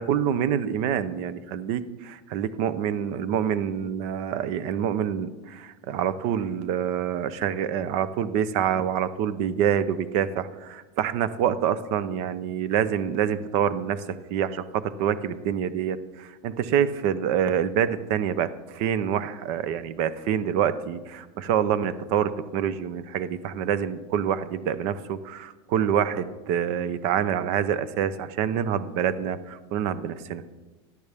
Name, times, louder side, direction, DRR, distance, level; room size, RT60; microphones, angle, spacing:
voice 1, 0.0-14.0 14.3-30.4, right 9 dB, 50° right, 15 dB, 0.7 m, -26 dB
13.5 x 11.0 x 3.5 m, 1.2 s
supercardioid pair, 155°, 14 cm